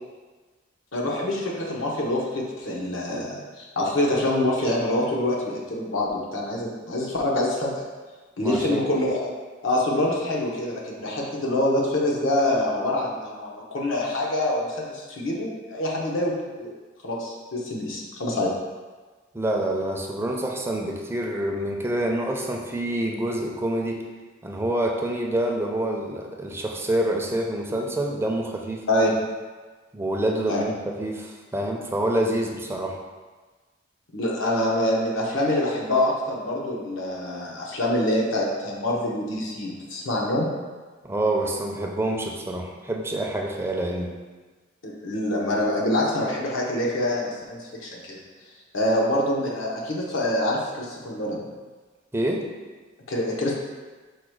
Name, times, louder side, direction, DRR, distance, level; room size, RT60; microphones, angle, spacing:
voice 1, 0.9-7.7 8.4-9.3 9.6-16.7 17.0-18.5 28.9-29.1 30.5-30.6 34.1-40.5 44.8-48.2 48.7-51.5 53.1-53.5, left 1 dB, 85° left, -3 dB, 0.9 m, -25 dB
voice 2, 8.4-8.8 19.3-24.0 24.4-28.9 29.9-33.0 41.0-44.2 52.1-52.5, right 1 dB, 15° right, 0 dB, 0.4 m, -27 dB
4.7 x 2.3 x 4.6 m, 1.4 s
head